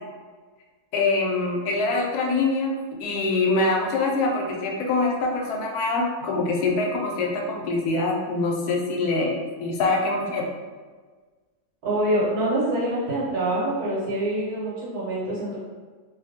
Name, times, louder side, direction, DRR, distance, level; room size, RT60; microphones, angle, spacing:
voice 1, 0.9-2.7 3.0-10.5, left 3 dB, 75° left, 0 dB, 1.0 m, -24 dB
voice 2, 11.8-15.6, right 1 dB, 75° right, -7 dB, 1.5 m, -25 dB
2.7 x 2.5 x 2.7 m, 1.4 s
omnidirectional pair, 1.7 m